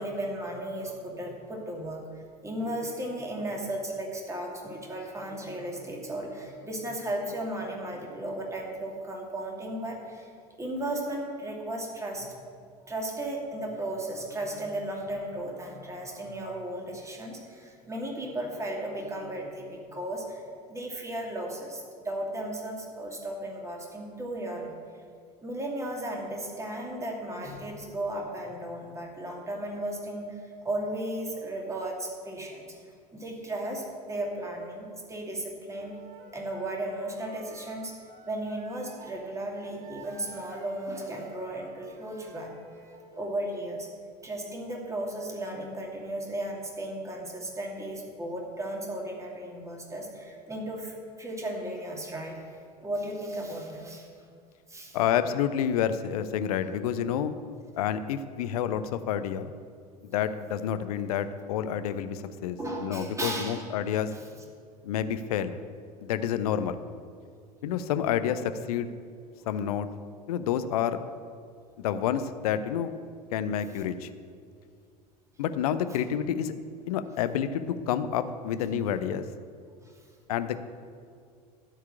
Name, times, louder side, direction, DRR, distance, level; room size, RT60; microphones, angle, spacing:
voice 1, 0.0-2.0 2.4-10.3 10.6-12.4 12.8-20.4 20.7-24.7 25.4-32.8 33.1-36.0 36.3-38.0 38.3-42.5 43.1-43.9 44.2-52.4 52.8-54.1 54.7-55.0 62.6-63.6 64.1-64.3 75.9-76.0 79.8-79.9, right 1 dB, 15° right, 0 dB, 2.3 m, -35 dB
Wind instrument woodwind instrument, 35.7-39.2 39.5-43.3, right 2 dB, 60° right, 1.3 m, -52 dB
voice 2, 54.9-57.3 57.8-59.5 60.1-64.1 64.8-65.5 66.0-66.8 67.6-68.9 69.5-69.9 70.3-71.0 71.8-72.9 73.3-74.1 75.4-76.5 76.9-79.2 80.3-80.6, left 9 dB, 60° left, 11 dB, 0.7 m, -29 dB
13.5 x 4.7 x 8.5 m, 2.2 s
figure-of-eight pair, 70°, 21 cm